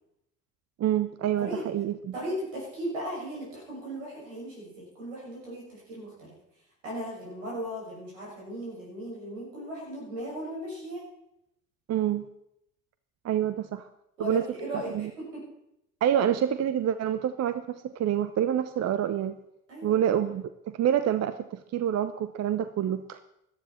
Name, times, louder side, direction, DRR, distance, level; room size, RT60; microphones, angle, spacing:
voice 1, 0.8-2.1 11.9-12.3 13.2-13.9 14.2-14.4 14.7-15.1 16.0-19.4 19.8-23.2, right 10 dB, 40° right, 12 dB, 0.8 m, -27 dB
voice 2, 2.1-6.3 6.8-11.1 14.2-15.4 19.7-20.0, equal, 80° right, -4 dB, 6.7 m, -37 dB
17.0 x 12.5 x 4.4 m, 0.80 s
hypercardioid pair, 55°, 38 cm